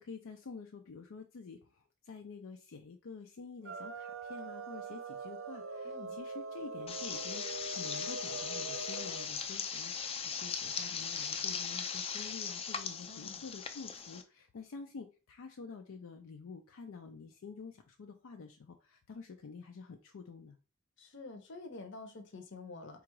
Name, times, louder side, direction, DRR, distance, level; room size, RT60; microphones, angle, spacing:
voice 1, 0.0-20.6, left 4 dB, 85° left, 4 dB, 0.5 m, -49 dB
sound 1, 3.6-9.3, right 3 dB, 80° right, 0.6 m, -42 dB
voice 2, 5.8-6.2 13.1-13.4 21.0-23.0, left 3 dB, 65° left, 6 dB, 0.8 m, -48 dB
sound 2, 6.9-14.2, left 6 dB, 30° left, 0.4 m, -39 dB
3.8 x 2.4 x 4.6 m, 0.34 s
head